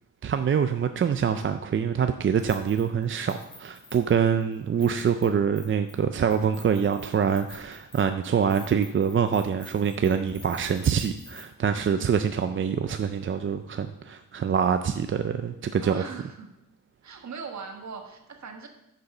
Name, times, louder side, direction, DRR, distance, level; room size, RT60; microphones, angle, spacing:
voice 1, 0.2-16.0, right 7 dB, 40° right, 8 dB, 0.4 m, -25 dB
Keys jangling, 2.4-3.0 3.3-5.3 5.6-6.0 6.3-11.4 11.8-11.9, left 2 dB, 15° left, 2.6 m, -48 dB
voice 2, 15.8-16.5 17.0-18.7, right 5 dB, 60° right, 4 dB, 1.5 m, -39 dB
9.5 x 6.7 x 5.9 m, 0.86 s
wide cardioid pair, 160°, 32 cm